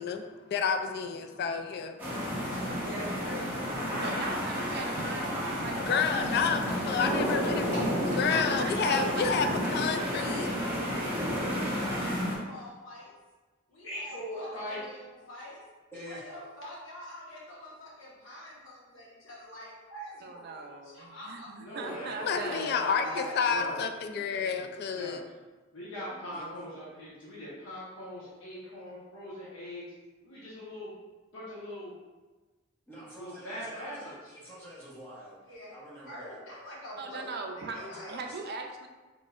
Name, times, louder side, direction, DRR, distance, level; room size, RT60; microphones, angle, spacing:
voice 1, 0.0-2.0 5.9-7.6 8.2-10.5 22.2-25.2, left 6 dB, 55° left, 6 dB, 0.3 m, -30 dB
sound 1, 2.0-12.4, equal, 10° right, 1.0 m, -31 dB
voice 2, 2.8-6.2 6.8-9.4 9.8-13.1 13.7-15.6 16.0-20.4 20.8-21.5 22.3-23.3 35.5-35.7 36.0-38.2, equal, 70° left, -6 dB, 1.4 m, -44 dB
voice 3, 4.0-6.2 8.1-9.6 20.2-23.1 37.0-37.8 38.1-38.9, right 4 dB, 55° right, 3 dB, 0.5 m, -40 dB
voice 4, 8.9-9.3 15.9-16.2 21.7-23.9 24.3-24.6 26.3-26.4 32.9-35.4 35.7-36.4 37.7-38.4, equal, 10° left, -8 dB, 1.2 m, -46 dB
voice 5, 13.8-14.8 21.6-22.8 23.5-23.8 24.9-25.2 25.7-29.9 30.2-30.9 31.3-32.0 33.2-34.3, equal, 90° left, -9 dB, 1.2 m, -41 dB
4.1 x 3.6 x 2.5 m, 1.2 s
head